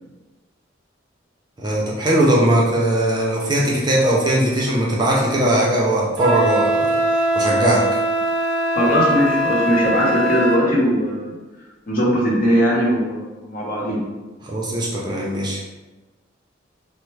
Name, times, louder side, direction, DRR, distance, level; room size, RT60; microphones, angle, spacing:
voice 1, 1.6-7.9 14.4-15.6, right 1 dB, 20° right, -4 dB, 0.5 m, -19 dB
Wind instrument woodwind instrument, 6.2-10.7, right 1 dB, 75° right, 0.5 m, -21 dB
voice 2, 8.7-11.3 11.9-14.0, equal, 45° left, -5 dB, 1.0 m, -19 dB
4.3 x 2.0 x 3.1 m, 1.2 s
head